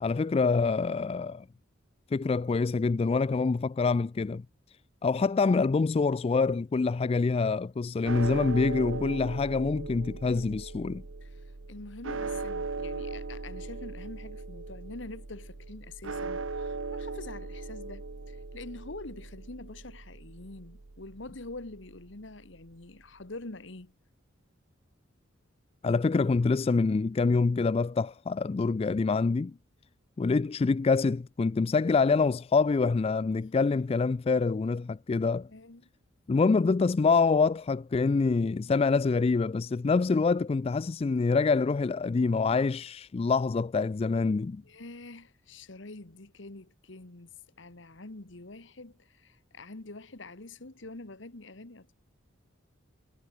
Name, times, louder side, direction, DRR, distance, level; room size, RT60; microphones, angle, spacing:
voice 1, 0.0-1.5 2.1-4.4 5.0-11.0 25.8-29.5 30.2-35.5 36.3-44.6, left 4 dB, 30° left, 0.3 m, -26 dB
sound 1, 8.0-22.3, right 3 dB, 80° right, 1.0 m, -39 dB
voice 2, 11.2-23.9 33.5-33.6 35.5-35.9 44.6-51.9, left 2 dB, 65° left, 1.6 m, -45 dB
head